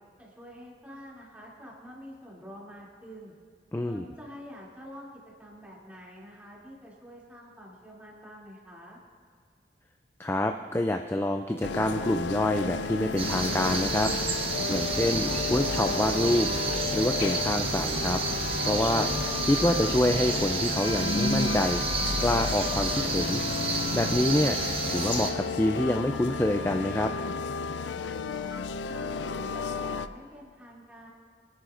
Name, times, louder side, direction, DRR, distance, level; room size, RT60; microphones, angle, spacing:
voice 1, 0.2-3.3 3.9-5.1 5.4-9.0 28.5-31.1, equal, 10° right, -5 dB, 2.7 m, -47 dB
voice 2, 3.7-4.0 10.2-14.1 14.4-18.2 18.6-23.4 23.9-24.6 24.9-27.1, left 1 dB, 15° left, 5 dB, 0.3 m, -27 dB
sound 1, 11.6-30.1, left 4 dB, 85° left, 0.4 m, -32 dB
sound 2, 13.2-25.3, right 3 dB, 30° right, 1.0 m, -30 dB
26.0 x 10.0 x 2.5 m, 2.2 s
head